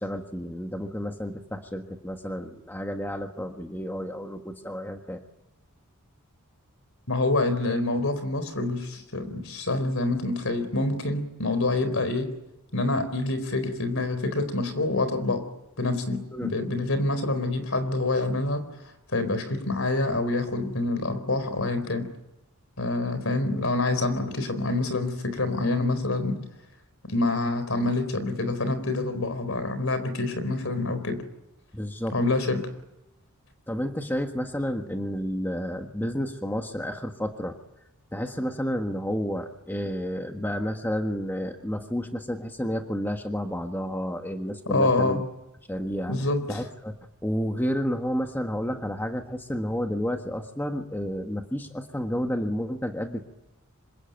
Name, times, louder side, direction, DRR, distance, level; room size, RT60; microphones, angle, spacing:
voice 1, 0.0-5.2 16.3-16.5 31.7-32.1 33.7-37.6 38.1-45.2 45.7-46.1 46.5-46.9 47.2-53.3, equal, 10° left, 4 dB, 1.5 m, -31 dB
voice 2, 7.1-12.3 12.7-15.4 15.8-18.6 19.1-22.1 22.8-26.4 27.0-31.2 32.1-32.7 44.7-45.2 46.1-46.6, left 2 dB, 65° left, 11 dB, 4.3 m, -26 dB
26.5 x 23.5 x 9.2 m, 0.90 s
head